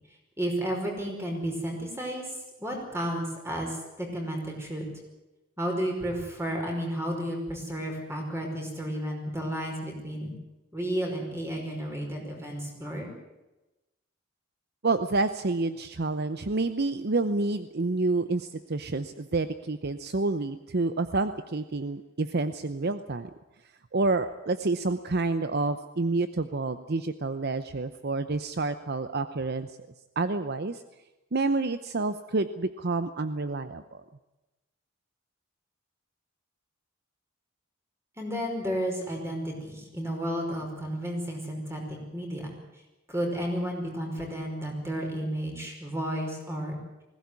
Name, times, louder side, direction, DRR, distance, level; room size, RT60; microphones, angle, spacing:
voice 1, 0.4-2.3 2.6-4.9 5.6-10.3 10.7-13.1 38.2-42.5 43.1-46.8, equal, 15° right, 1 dB, 5.2 m, -32 dB
voice 2, 14.8-23.3 23.9-29.7 30.2-30.8 31.3-34.0, right 3 dB, 50° right, 11 dB, 0.8 m, -28 dB
20.0 x 16.5 x 9.6 m, 1.0 s
head